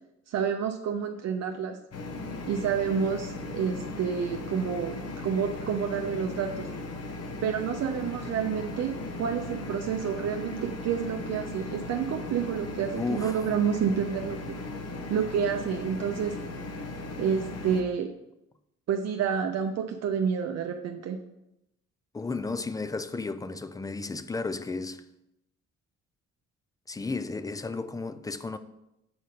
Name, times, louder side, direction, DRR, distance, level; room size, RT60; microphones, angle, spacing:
voice 1, 0.3-1.8 2.5-5.0 5.2-6.7 7.4-14.5 15.1-16.4 17.2-18.1 18.9-21.2, right 7 dB, 60° right, 0.6 m, -29 dB
sound 1, 1.9-17.8, left 2 dB, 55° left, 0.9 m, -37 dB
voice 2, 12.9-13.4 22.1-25.1 26.9-28.6, left 3 dB, 15° left, 0.3 m, -33 dB
7.8 x 2.7 x 5.1 m
cardioid pair, 90°, 30 cm